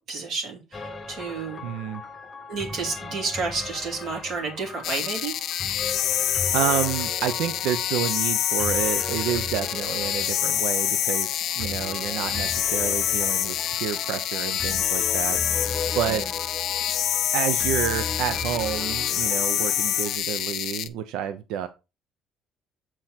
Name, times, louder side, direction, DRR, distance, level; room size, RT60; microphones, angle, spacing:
voice 1, 0.1-1.6 2.5-5.4 16.1-16.3, right 4 dB, 50° right, 0 dB, 2.9 m, -31 dB
sound 1, 0.7-20.2, left 3 dB, 20° left, 0.8 m, -36 dB
voice 2, 1.6-2.0 6.1-15.4 15.9-16.2 17.3-21.7, right 10 dB, 85° right, 10 dB, 0.7 m, -29 dB
sound 2, 4.8-20.9, left 11 dB, 55° left, 0.6 m, -26 dB
7.8 x 4.5 x 4.4 m, 0.27 s
cardioid pair, 170°, 0 cm